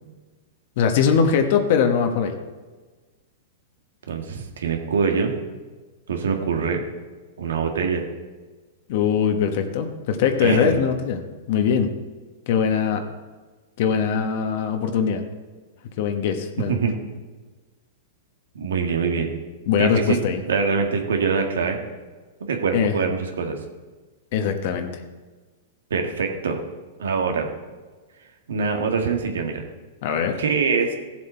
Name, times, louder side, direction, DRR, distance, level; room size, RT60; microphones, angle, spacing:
voice 1, 0.8-2.3 8.9-11.2 11.5-11.9 12.5-13.0 13.8-15.2 16.0-16.8 19.7-20.4 22.7-22.9 24.3-24.9 30.0-30.4, left 7 dB, 55° left, 6 dB, 1.2 m, -21 dB
voice 2, 4.1-5.3 6.1-6.8 7.4-8.0 10.4-10.8 16.7-16.9 18.6-19.3 19.8-20.2 20.5-21.8 22.5-23.6 25.9-26.6 27.0-27.5 28.5-29.6 30.4-30.9, right 5 dB, 90° right, 4 dB, 1.8 m, -23 dB
15.0 x 7.4 x 4.4 m, 1.3 s
hypercardioid pair, 135°, 0 cm